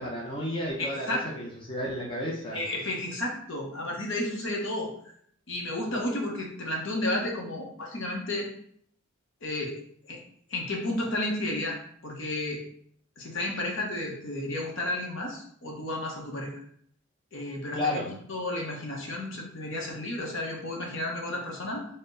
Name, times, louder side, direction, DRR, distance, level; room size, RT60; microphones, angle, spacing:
voice 1, 0.0-1.1 1.4-2.6 17.7-18.1, left 1 dB, 25° left, -4 dB, 0.7 m, -32 dB
voice 2, 0.8-1.2 2.5-4.9 5.5-8.5 9.4-9.8 10.0-10.2 10.5-11.8 12.0-12.6 13.2-16.6 17.3-21.9, left 1 dB, 60° left, -1 dB, 0.9 m, -32 dB
4.2 x 2.1 x 3.8 m, 0.63 s
head